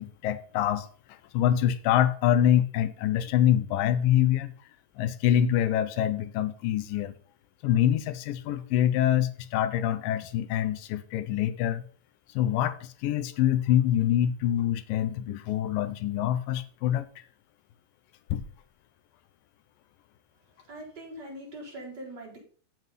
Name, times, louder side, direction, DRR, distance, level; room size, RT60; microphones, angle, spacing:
voice 1, 0.0-4.5 5.0-7.1 7.6-11.8 12.3-17.1 18.3-18.4, left 11 dB, 80° left, 2.4 m, -25 dB
voice 2, 20.7-22.4, right 1 dB, 30° right, 4.6 m, -42 dB
7.7 x 7.6 x 5.6 m
omnidirectional pair, 4.1 m